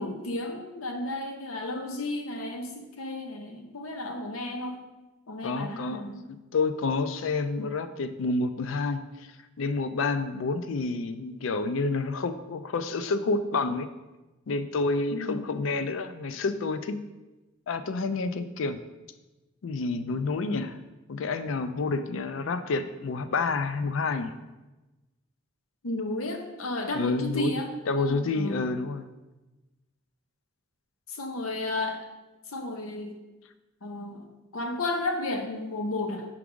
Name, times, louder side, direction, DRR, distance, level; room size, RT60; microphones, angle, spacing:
voice 1, 0.0-4.8 5.3-6.2 15.1-15.5 25.8-27.7 28.0-28.6 31.1-32.0 32.5-33.2 33.8-36.2, left 2 dB, 85° left, 4 dB, 0.8 m, -33 dB
voice 2, 5.4-9.0 9.6-13.9 14.5-17.0 17.7-18.8 19.6-20.8 21.1-24.3 26.9-27.6 27.9-29.1, left 3 dB, 65° left, 11 dB, 0.4 m, -29 dB
5.9 x 4.7 x 3.7 m, 1.1 s
head